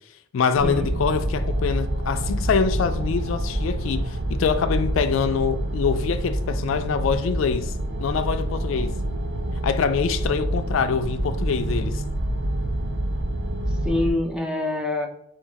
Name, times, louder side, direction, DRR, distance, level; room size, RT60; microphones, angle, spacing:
voice 1, 0.3-7.7 8.0-9.0 9.6-12.0, left 6 dB, 75° left, 0.3 m, -24 dB
sound 1, 0.5-14.1, right 1 dB, 55° right, 0.6 m, -27 dB
voice 2, 13.7-15.1, left 2 dB, 5° right, 0.5 m, -26 dB
4.7 x 2.4 x 4.0 m
head